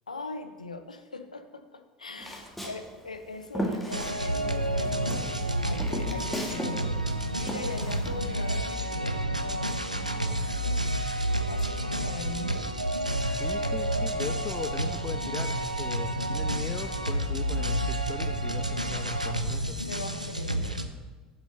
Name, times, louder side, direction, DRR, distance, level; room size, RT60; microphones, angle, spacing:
voice 1, 0.1-5.4 5.6-10.3 10.6-12.7 16.7-17.3 19.8-20.8, left 3 dB, 80° left, 8 dB, 0.5 m, -41 dB
Walk footsteps, 2.2-4.6 4.9-6.8 7.0-8.6, equal, 5° left, 1.5 m, -35 dB
sound 1, 3.9-20.9, right 1 dB, 90° right, 0.4 m, -30 dB
voice 2, 13.3-19.8, left 6 dB, 30° left, 8 dB, 0.4 m, -39 dB
7.8 x 7.2 x 4.1 m, 1.4 s
figure-of-eight pair, 70°, 4 cm